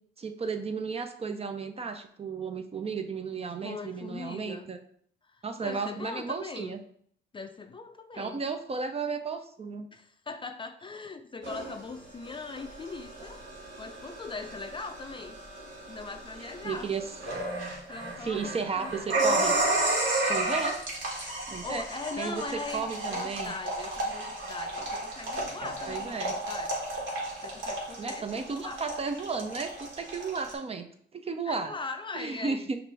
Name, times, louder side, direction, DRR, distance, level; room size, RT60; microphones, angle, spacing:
voice 1, 0.2-4.8 5.4-6.8 8.2-9.9 16.4-17.0 18.2-19.6 20.3-20.8 21.5-21.8 22.2-22.4 22.7-23.5 25.8-26.4 28.0-30.9 31.1-31.7 32.1-32.8, right 5 dB, 30° right, 7 dB, 0.5 m, -33 dB
voice 2, 3.6-4.7 5.3-6.8 7.3-8.4 9.9-13.4 13.8-15.4 15.9-16.9 17.9-19.1 21.5-26.8 27.4-28.8 31.5-32.8, left 3 dB, 25° left, 7 dB, 0.4 m, -40 dB
sound 1, 11.4-30.5, right 2 dB, 70° right, 1.6 m, -33 dB
5.9 x 2.6 x 3.4 m, 0.62 s
cardioid pair, 90°, 20 cm